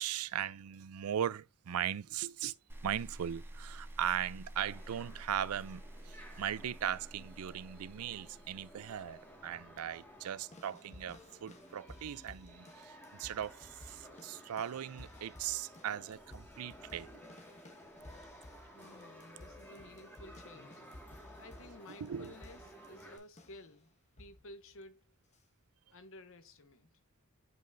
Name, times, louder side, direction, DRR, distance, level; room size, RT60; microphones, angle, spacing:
voice 1, 0.0-2.5 2.8-17.1 22.0-22.3, right 10 dB, 85° right, 0.4 m, -38 dB
sound 1, 2.7-9.8, right 1 dB, 10° right, 0.9 m, -50 dB
sound 2, 4.6-23.2, equal, 10° left, 1.8 m, -56 dB
sound 3, 10.5-23.7 24.2-24.5 25.3-25.4, left 1 dB, 30° left, 1.1 m, -56 dB
voice 2, 18.7-20.8 21.4-23.9 24.2-25.0 25.9-26.9, left 1 dB, 65° left, 0.9 m, -54 dB
7.7 x 5.2 x 2.6 m
head